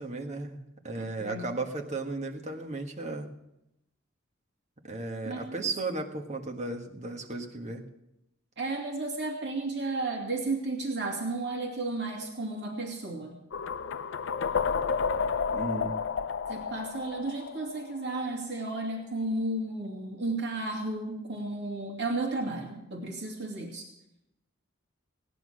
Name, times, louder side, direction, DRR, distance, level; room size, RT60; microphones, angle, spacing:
voice 1, 0.0-3.3 4.8-7.9 15.5-16.0, right 3 dB, 35° right, 3 dB, 1.6 m, -35 dB
voice 2, 0.9-1.5 5.2-5.4 8.6-13.4 16.5-23.9, right 2 dB, 60° right, 0 dB, 2.6 m, -33 dB
sound 1, 13.5-18.4, left 6 dB, 65° left, 0.5 m, -31 dB
17.5 x 10.5 x 6.4 m, 0.87 s
head